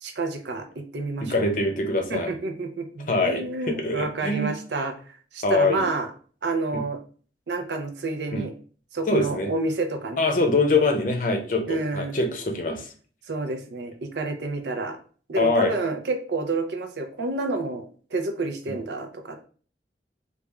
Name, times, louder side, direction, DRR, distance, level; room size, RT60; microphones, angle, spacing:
voice 1, 0.0-1.5 2.1-6.1 6.4-7.0 7.5-8.5 8.9-10.3 11.7-12.2 13.3-15.0 15.3-17.9 18.1-19.5, right 3 dB, 80° right, 6 dB, 0.6 m, -29 dB
voice 2, 1.2-2.3 3.1-4.5 5.4-5.9 6.7-6.8 8.3-8.4 9.1-9.5 10.2-12.9 15.4-15.7, left 2 dB, 45° left, 3 dB, 0.6 m, -24 dB
3.5 x 2.4 x 3.0 m, 0.42 s
head